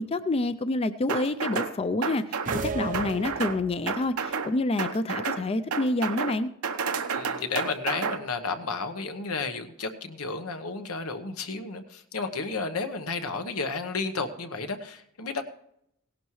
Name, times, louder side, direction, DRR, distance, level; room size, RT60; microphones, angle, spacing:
voice 1, 0.0-2.2 2.6-6.5, left 2 dB, 25° left, 12 dB, 0.4 m, -27 dB
sound 1, 1.1-1.7 2.0-2.7 2.9-3.6 3.9-4.5 4.8-5.4 5.7-6.3 6.6-8.2, right 5 dB, 85° right, 0.9 m, -30 dB
sound 2, 2.4-4.0, right 4 dB, 40° right, 0.6 m, -34 dB
voice 2, 6.9-15.4, left 4 dB, 90° left, 8 dB, 1.1 m, -32 dB
17.5 x 11.5 x 3.2 m, 0.74 s
head